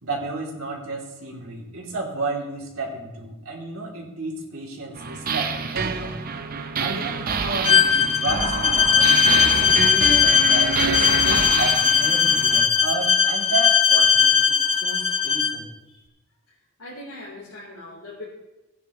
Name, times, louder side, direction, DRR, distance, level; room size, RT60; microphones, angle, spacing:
voice 1, 0.0-6.1 6.8-15.7, right 2 dB, 75° right, -2 dB, 2.9 m, -32 dB
sound 1, 4.9-12.7, right 5 dB, 40° right, 0.6 m, -27 dB
Bowed string instrument, 7.6-15.6, left 7 dB, 25° left, 0.7 m, -19 dB
voice 2, 16.8-18.2, left 1 dB, 80° left, -8 dB, 3.9 m, -40 dB
17.0 x 9.7 x 3.1 m, 1.0 s
head